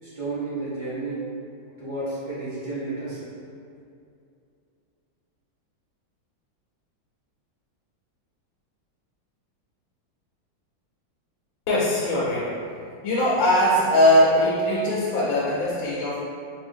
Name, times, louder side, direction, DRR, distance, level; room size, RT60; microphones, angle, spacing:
voice 1, 0.0-1.2 1.8-3.3, right 2 dB, 65° right, -12 dB, 0.4 m, -31 dB
voice 2, 11.7-12.6 13.0-16.2, left 1 dB, 80° left, -7 dB, 1.3 m, -21 dB
3.1 x 2.7 x 3.4 m, 2.5 s
omnidirectional pair, 2.1 m